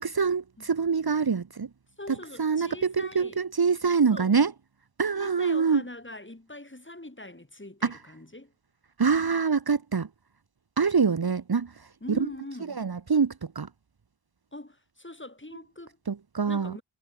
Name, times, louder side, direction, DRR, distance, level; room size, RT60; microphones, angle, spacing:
voice 1, 0.0-1.7 2.4-4.5 5.0-5.8 7.8-8.0 9.0-10.1 10.8-11.7 12.7-13.7 16.1-16.7, right 5 dB, 50° right, 1.3 m, -25 dB
voice 2, 2.0-3.4 4.1-4.3 5.1-8.5 12.0-12.8 14.5-16.0 16.5-16.8, left 1 dB, 25° left, 6.8 m, -43 dB
wide cardioid pair, 50°, 48 cm